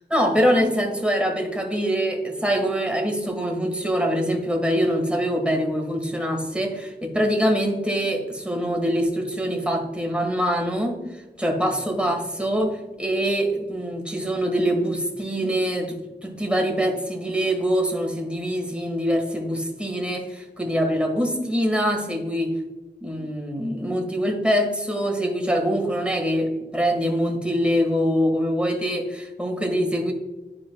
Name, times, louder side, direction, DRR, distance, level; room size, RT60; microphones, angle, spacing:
voice 1, 0.1-22.5 23.0-30.1, equal, 5° right, 1 dB, 1.6 m, -24 dB
11.0 x 4.7 x 2.3 m, 1.2 s
wide cardioid pair, 65°, 18 cm